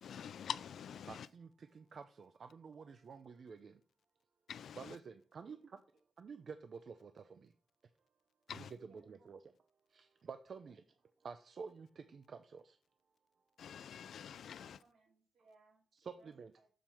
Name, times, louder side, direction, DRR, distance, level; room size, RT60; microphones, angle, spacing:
voice 1, 0.0-1.3 4.5-5.0 8.5-8.7 13.6-14.8, left 8 dB, 80° left, 0.3 m, -46 dB
voice 2, 1.1-3.8 4.7-5.8 6.2-7.5 8.5-9.5 9.9-10.8 11.2-12.8 15.9-16.5, right 5 dB, 50° right, 0.4 m, -50 dB
voice 3, 8.8-9.4 10.6-10.7 14.6-15.8 16.2-16.7, right 3 dB, 85° right, 2.7 m, -68 dB
7.1 x 4.4 x 6.1 m
wide cardioid pair, 165°, 0 cm